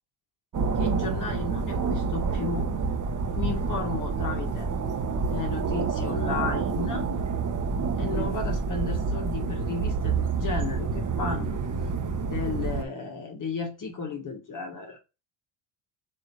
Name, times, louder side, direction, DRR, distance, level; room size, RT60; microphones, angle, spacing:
sound 1, 0.5-12.8, right 5 dB, 40° right, 1.2 m, -28 dB
voice 1, 0.8-2.7 3.4-4.7 5.3-7.0 8.0-11.6 12.2-15.0, left 4 dB, 40° left, 1.7 m, -33 dB
7.4 x 2.9 x 4.7 m
cardioid pair, 110°, 48 cm